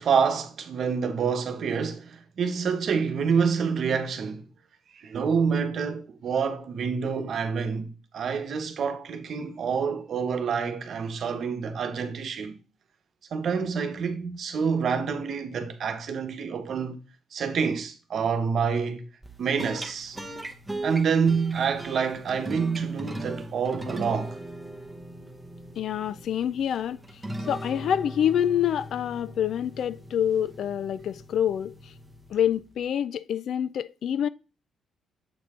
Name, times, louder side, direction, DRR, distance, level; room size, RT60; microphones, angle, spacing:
voice 1, 0.0-4.4 5.0-12.6 13.3-17.0 17.3-19.1 19.4-20.2 20.8-24.4, right 6 dB, 55° right, 1.0 m, -27 dB
sound 1, 19.2-32.8, right 1 dB, 5° right, 0.8 m, -40 dB
voice 2, 25.8-27.0 27.5-31.9 32.3-34.3, left 9 dB, 60° left, 0.3 m, -26 dB
7.7 x 4.6 x 3.6 m
cardioid pair, 140°, 0 cm